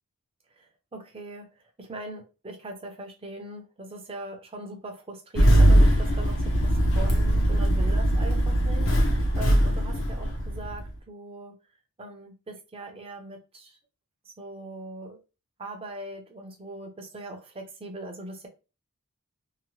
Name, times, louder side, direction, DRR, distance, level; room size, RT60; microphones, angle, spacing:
voice 1, 0.6-1.5 1.8-11.6 12.0-13.8 14.4-15.2 15.6-18.5, right 2 dB, 25° right, 0.6 m, -40 dB
Engine starting, 5.4-10.9, equal, 60° left, 0.7 m, -21 dB
2.8 x 2.1 x 2.9 m
head